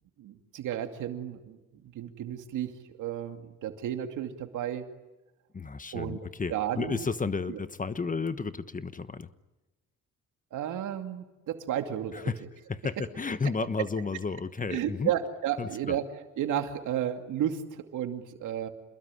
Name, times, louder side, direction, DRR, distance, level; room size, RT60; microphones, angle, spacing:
voice 1, 0.2-2.7 3.0-4.9 5.9-6.2 6.5-7.1 7.5-7.6 10.5-12.2 14.7-16.1 16.4-18.7, right 10 dB, 80° right, 6 dB, 2.6 m, -32 dB
voice 2, 5.5-9.3 12.1-12.4 12.7-15.1 15.6-16.0, left 4 dB, 25° left, 13 dB, 1.2 m, -32 dB
28.0 x 21.0 x 9.9 m, 1.1 s
cardioid pair, 90°, 30 cm